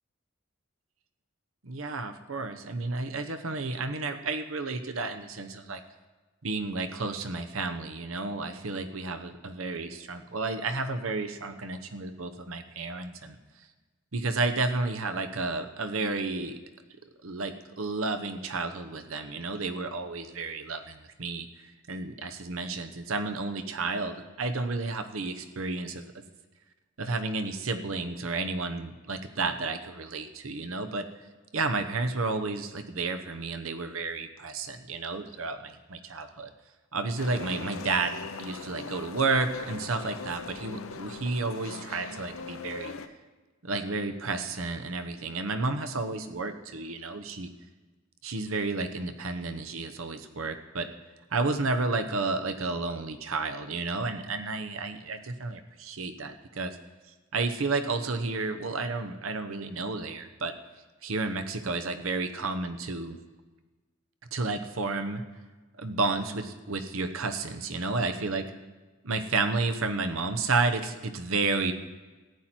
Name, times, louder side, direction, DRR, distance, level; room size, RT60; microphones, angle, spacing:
voice 1, 1.6-5.8 6.4-13.4 14.1-16.6 17.2-26.0 27.0-31.1 31.5-36.5 36.9-38.1 38.4-42.9 43.6-47.5 48.2-50.9 51.3-56.8 57.3-60.5 61.0-63.2 64.3-65.2 65.8-68.5 69.0-71.7, right 3 dB, 90° right, 8 dB, 1.0 m, -31 dB
sound 1, 37.2-43.1, left 4 dB, 85° left, 0.7 m, -40 dB
14.0 x 9.2 x 4.5 m, 1.3 s
head